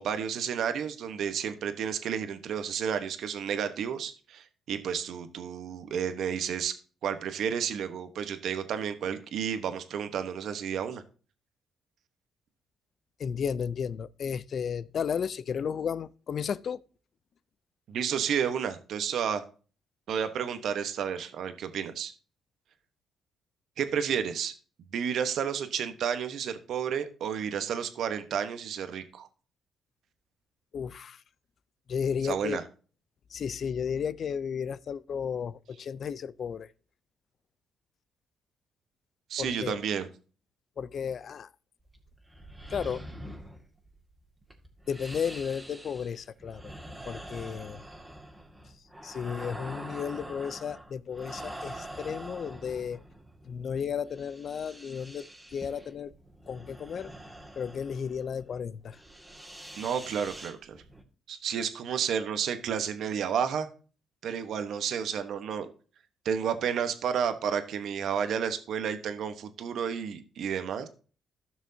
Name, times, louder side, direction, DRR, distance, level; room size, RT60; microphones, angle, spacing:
voice 1, 0.0-6.7 7.0-11.0 17.9-19.4 20.1-22.1 23.8-24.5 24.8-29.3 32.2-32.6 39.3-40.1 59.8-60.8 61.3-63.7 64.2-65.7 66.2-70.9, right 8 dB, 70° right, 1.1 m, -31 dB
voice 2, 13.2-16.8 30.7-31.2 31.9-32.6 33.3-36.7 39.4-39.8 40.8-41.5 42.7-43.0 44.9-46.7 47.1-47.8 49.0-53.0 53.4-56.1 56.5-57.1 57.6-59.0, left 7 dB, 55° left, 0.5 m, -33 dB
sound 1, 41.8-61.0, right 1 dB, 10° right, 2.0 m, -45 dB
15.5 x 6.2 x 2.8 m
cardioid pair, 90°, 0 cm